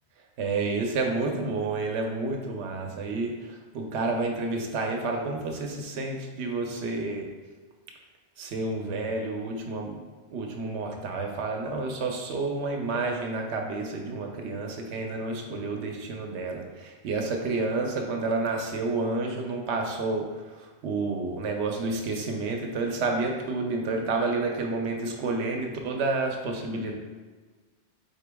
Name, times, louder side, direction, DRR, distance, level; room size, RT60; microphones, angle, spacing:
voice 1, 0.4-7.3 8.4-10.0 10.3-20.3 20.6-26.9, right 3 dB, 85° right, 2 dB, 0.9 m, -30 dB
4.3 x 2.9 x 3.4 m, 1.3 s
omnidirectional pair, 1.1 m